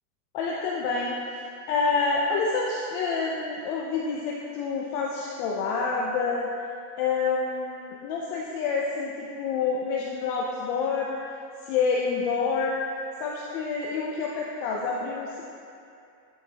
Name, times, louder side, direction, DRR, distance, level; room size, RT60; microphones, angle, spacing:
voice 1, 0.3-1.2 1.7-6.4 7.0-11.2 11.6-12.8 13.2-15.4, left 4 dB, 35° left, -3 dB, 0.4 m, -27 dB
9.5 x 6.4 x 2.8 m, 2.5 s
supercardioid pair, 155°, 47 cm